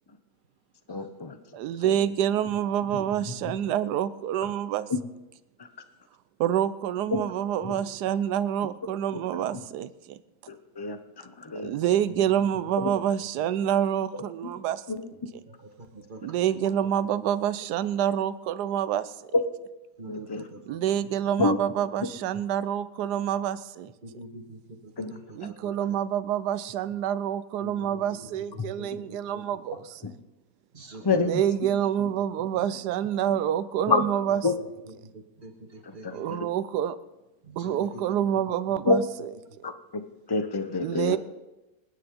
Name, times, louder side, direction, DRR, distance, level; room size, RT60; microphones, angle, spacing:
voice 1, 0.9-1.4 10.8-11.0 11.5-11.7 14.9-15.0 20.1-20.4 21.4-21.6 25.0-25.1 31.0-31.4 33.9-34.0 34.4-34.5 36.0-36.2 38.9-39.0 39.6-40.0 40.3-41.2, left 4 dB, 30° left, 8 dB, 0.4 m, -26 dB
voice 2, 1.5-4.9 6.4-10.2 11.6-14.9 16.2-19.3 20.7-23.9 25.3-30.1 31.0-34.5 36.1-37.0 37.6-39.3 40.8-41.2, right 10 dB, 70° right, 14 dB, 1.2 m, -27 dB
voice 3, 12.1-12.5 15.5-16.8 20.0-20.8 21.2-21.3 24.0-26.0 27.6-29.4 30.7-31.6 34.3-36.4 37.4-38.2 40.7-40.8, right 2 dB, 30° right, 3 dB, 1.8 m, -45 dB
26.0 x 9.8 x 3.8 m, 1.0 s
omnidirectional pair, 1.9 m